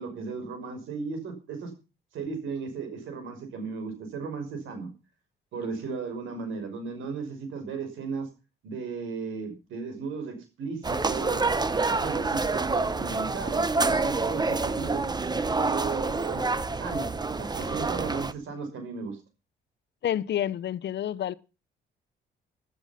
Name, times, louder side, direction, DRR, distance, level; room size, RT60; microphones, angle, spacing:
voice 1, 0.0-1.7 2.1-4.9 5.5-8.3 8.6-11.4 11.7-15.0 15.6-16.4 16.8-17.1 17.4-19.2, right 5 dB, 85° right, 5.8 m, -35 dB
sound 1, 10.8-18.3, right 3 dB, 20° right, 1.0 m, -27 dB
voice 2, 20.0-21.3, left 11 dB, 60° left, 0.9 m, -29 dB
14.5 x 12.5 x 5.9 m
cardioid pair, 90°, 20 cm